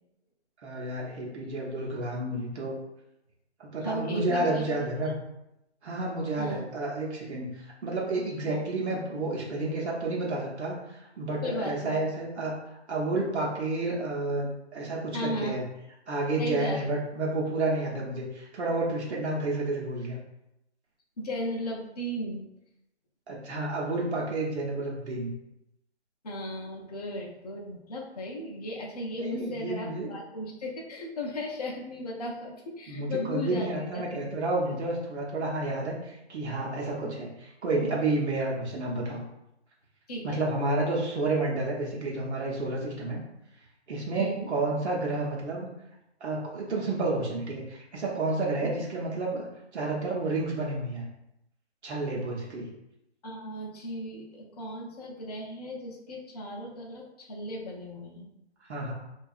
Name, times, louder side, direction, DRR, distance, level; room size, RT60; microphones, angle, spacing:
voice 1, 0.6-2.7 3.6-5.2 5.8-12.5 12.9-15.7 16.1-20.2 23.3-25.3 29.2-30.1 32.9-39.2 40.2-43.2 43.9-45.7 46.2-49.5 49.7-51.0 51.8-52.7 58.7-58.9, right 2 dB, 75° right, -3 dB, 0.8 m, -30 dB
voice 2, 3.8-4.7 5.0-5.1 6.4-6.6 8.4-8.6 11.4-12.0 15.1-15.6 16.4-16.9 21.2-22.5 26.2-33.7 33.9-34.0 34.3-34.4 37.0-37.1 40.1-40.4 44.2-44.5 48.6-48.7 53.2-58.3, left 1 dB, 35° left, -2 dB, 0.4 m, -36 dB
2.6 x 2.3 x 2.3 m, 0.86 s
hypercardioid pair, 160°, 34 cm